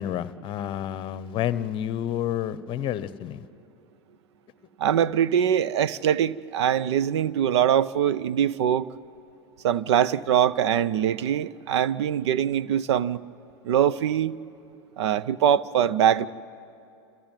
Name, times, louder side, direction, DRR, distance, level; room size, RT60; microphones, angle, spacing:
voice 1, 0.0-3.4, left 11 dB, 35° left, 16 dB, 0.9 m, -29 dB
voice 2, 4.8-8.9 9.6-13.2 13.6-14.4 15.0-16.3, right 9 dB, 75° right, 18 dB, 0.7 m, -23 dB
28.5 x 14.5 x 9.0 m, 2.6 s
hypercardioid pair, 120°, 14 cm